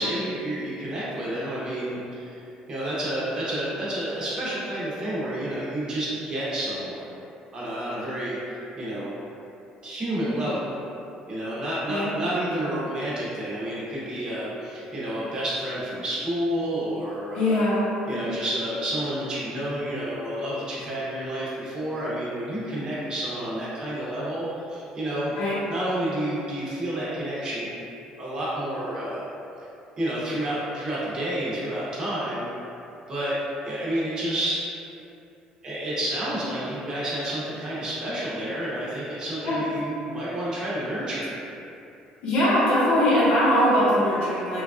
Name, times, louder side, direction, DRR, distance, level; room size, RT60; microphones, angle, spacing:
voice 1, 0.0-2.4 2.7-7.0 7.5-9.1 9.8-10.7 11.3-17.6 18.1-25.3 25.7-27.7 28.2-29.2 30.0-32.4 33.1-33.4 33.7-34.6 35.6-41.3, right 1 dB, 30° right, -8 dB, 0.8 m, -30 dB
voice 2, 17.3-18.3 25.3-25.6 39.4-39.6 42.2-44.6, equal, 65° left, -9 dB, 0.8 m, -22 dB
3.1 x 2.4 x 2.4 m, 2.8 s
cardioid pair, 140°, 2 cm